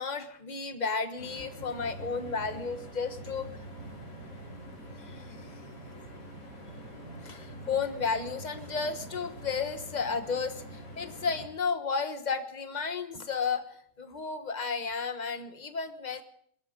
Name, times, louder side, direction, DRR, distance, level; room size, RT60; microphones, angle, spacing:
voice 1, 0.0-3.5 5.0-5.2 7.2-13.7 14.0-16.2, left 5 dB, 30° left, 9 dB, 1.2 m, -33 dB
sound 1, 1.2-11.5, equal, 75° left, 4.2 m, -45 dB
21.0 x 13.0 x 5.1 m, 0.63 s
omnidirectional pair, 1.8 m